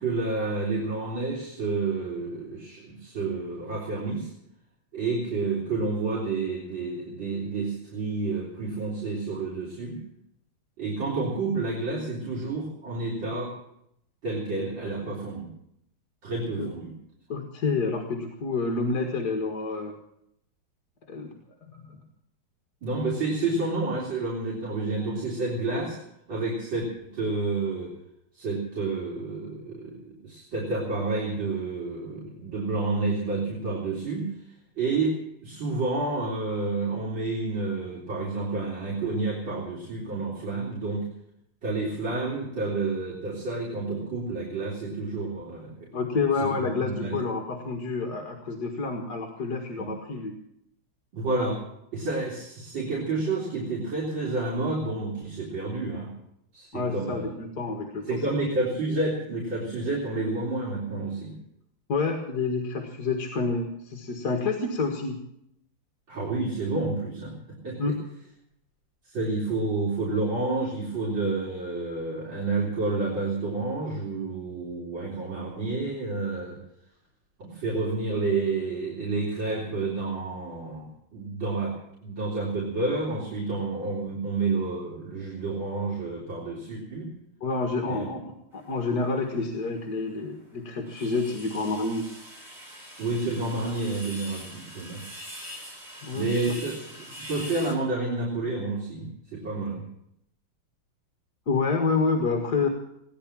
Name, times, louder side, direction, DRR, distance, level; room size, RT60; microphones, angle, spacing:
voice 1, 0.0-4.3 4.9-10.0 10.8-13.5 14.2-15.5 16.2-16.9 22.8-26.0 26.3-27.9 28.3-34.3 34.8-35.2 35.4-41.1 41.6-45.9 46.4-47.2 49.8-49.9 51.1-51.6 51.9-56.1 56.5-57.3 58.1-61.4 66.1-67.3 67.6-68.0 69.0-76.6 77.4-81.7 82.0-87.1 87.9-88.0 93.0-95.0 96.1-96.8 97.2-99.8, right 3 dB, 60° right, -6 dB, 4.4 m, -29 dB
voice 2, 17.3-20.0 21.1-21.4 21.7-22.0 45.9-50.4 56.7-58.2 61.9-65.2 67.8-67.9 87.4-88.2 88.5-92.1 96.0-96.3 101.5-102.7, left 4 dB, 50° left, 2 dB, 2.1 m, -28 dB
sound 1, 88.5-89.5 89.9-90.0 90.3-90.4 90.6-97.7, equal, 20° right, 4.0 m, -43 dB
18.5 x 10.5 x 7.4 m, 0.76 s
omnidirectional pair, 2.3 m